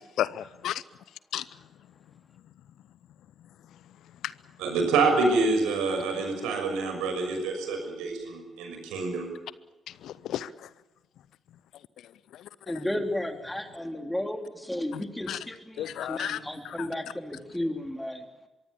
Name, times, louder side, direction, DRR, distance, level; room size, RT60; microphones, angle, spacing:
voice 1, 0.2-0.8 1.3-1.4 6.1-6.2 10.0-10.5 12.3-12.4 14.9-15.0 15.3-15.4 15.8-16.4 16.6-16.9, left 11 dB, 60° left, 0.7 m, -32 dB
voice 2, 4.6-9.3, right 3 dB, 65° right, 6.0 m, -27 dB
voice 3, 12.7-18.2, left 1 dB, 5° left, 3.4 m, -33 dB
24.0 x 23.5 x 7.1 m
figure-of-eight pair, 40°, 0 cm